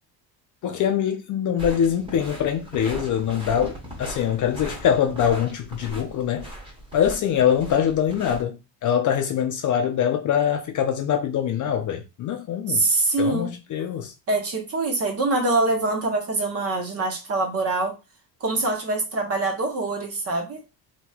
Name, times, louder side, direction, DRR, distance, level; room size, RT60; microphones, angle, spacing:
voice 1, 0.6-6.5 6.9-12.9 13.2-14.1, left 9 dB, 45° left, 0.5 m, -23 dB
sound 1, 1.6-8.4, equal, 10° right, 1.1 m, -38 dB
voice 2, 12.7-13.5 14.3-18.0 18.4-20.6, right 2 dB, 30° right, 0.9 m, -24 dB
3.0 x 2.9 x 2.3 m
cardioid pair, 120°, 45 cm